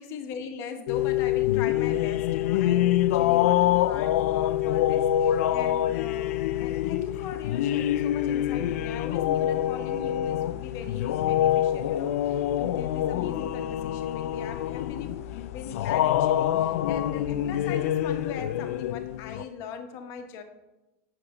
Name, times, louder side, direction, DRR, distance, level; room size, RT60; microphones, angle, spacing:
voice 1, 0.0-20.4, left 6 dB, 40° left, 6 dB, 1.2 m, -40 dB
sound 1, 0.9-19.4, left 12 dB, 80° left, 0.4 m, -26 dB
8.7 x 6.6 x 5.2 m, 1.0 s
supercardioid pair, 160°, 8 cm